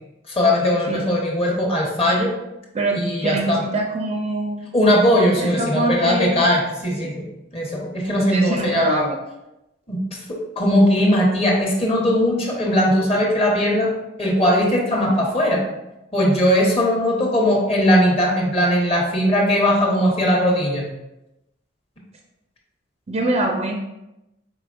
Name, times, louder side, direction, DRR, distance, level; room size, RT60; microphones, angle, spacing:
voice 1, 0.3-2.3 2.9-3.6 4.7-7.1 7.5-9.0 9.9-10.2 10.6-13.9 14.2-15.6 16.1-20.9, equal, 30° left, -1 dB, 1.0 m, -19 dB
voice 2, 2.7-4.7 5.4-6.4 7.0-7.1 8.2-9.2 23.1-23.7, right 1 dB, 35° right, 2 dB, 0.4 m, -23 dB
4.8 x 3.9 x 2.5 m, 0.93 s
head